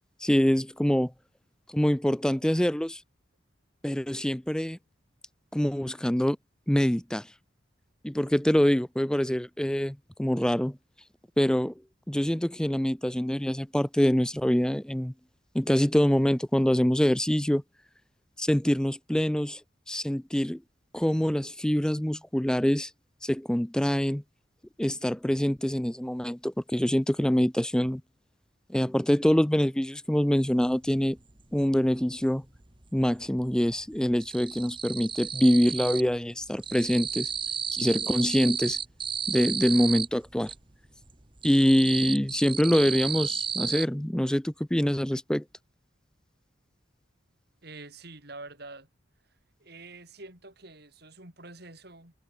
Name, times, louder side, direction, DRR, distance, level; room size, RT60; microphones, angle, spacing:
voice 1, 0.2-1.1 1.7-3.0 3.8-4.8 5.5-6.4 6.7-7.3 8.0-10.8 11.4-11.7 12.1-15.1 15.5-17.6 18.4-19.6 19.9-20.6 20.9-22.9 23.2-24.2 24.8-28.0 28.7-31.2 31.5-32.4 32.9-37.3 37.7-38.8 39.3-40.5 41.4-45.4, equal, 5° left, 0.4 m, -25 dB
sound 1, 30.6-30.7 31.0-32.3 32.6-33.3 33.5-36.2 36.4-40.6 41.0-43.9, right 7 dB, 25° right, 1.8 m, -33 dB
voice 2, 47.6-48.9 49.6-52.1, right 2 dB, 55° right, 6.5 m, -46 dB
head